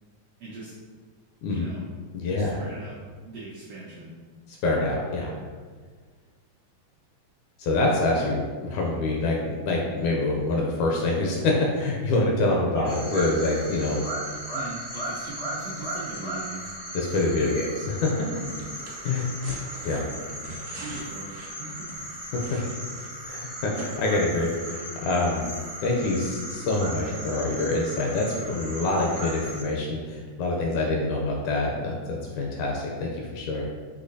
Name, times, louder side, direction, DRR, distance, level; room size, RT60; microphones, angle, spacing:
voice 1, 0.4-0.7 1.5-1.8 2.3-4.1 12.7-13.0 14.5-16.7 17.5-17.6 20.8-21.7, right 3 dB, 90° right, -6 dB, 1.3 m, -40 dB
voice 2, 2.1-2.6 4.6-5.3 7.6-14.0 16.9-17.7 18.0-18.3 19.0-20.0 22.3-22.6 23.2-25.5 25.8-33.6, left 2 dB, 80° left, -1 dB, 1.8 m, -26 dB
sound 1, 12.8-29.6, right 1 dB, 55° left, 0.6 m, -37 dB
sound 2, 18.4-23.4 23.7-23.9, right 2 dB, 70° right, 1.5 m, -43 dB
6.1 x 2.8 x 2.6 m, 1.5 s
omnidirectional pair, 3.7 m